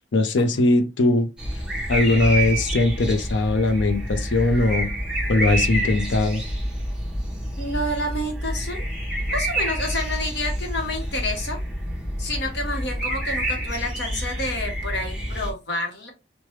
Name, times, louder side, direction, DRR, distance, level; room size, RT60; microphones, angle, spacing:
voice 1, 0.1-1.3 1.9-4.9 5.3-6.4, left 2 dB, 80° left, 0.5 m, -20 dB
sound 1, 1.4-15.5, right 1 dB, 5° right, 0.7 m, -28 dB
voice 2, 7.6-8.8 9.3-11.6 12.2-16.1, left 1 dB, 65° left, 0.9 m, -29 dB
3.2 x 2.1 x 3.0 m
head